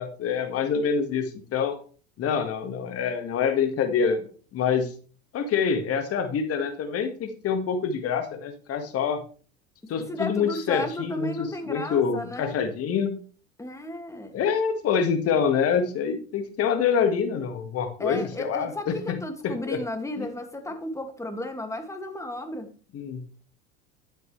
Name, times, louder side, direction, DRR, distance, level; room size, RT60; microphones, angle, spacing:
voice 1, 0.0-1.8 2.2-4.2 4.5-4.9 5.3-9.2 9.9-11.3 11.7-13.2 14.3-19.2 19.4-19.8 20.2-20.3 22.9-23.2, left 6 dB, 45° left, 8 dB, 1.8 m, -26 dB
voice 2, 9.9-12.6 13.6-14.3 18.0-22.7, left 1 dB, 10° left, 5 dB, 2.2 m, -34 dB
11.5 x 8.8 x 3.3 m, 0.39 s
hypercardioid pair, 80°, 33 cm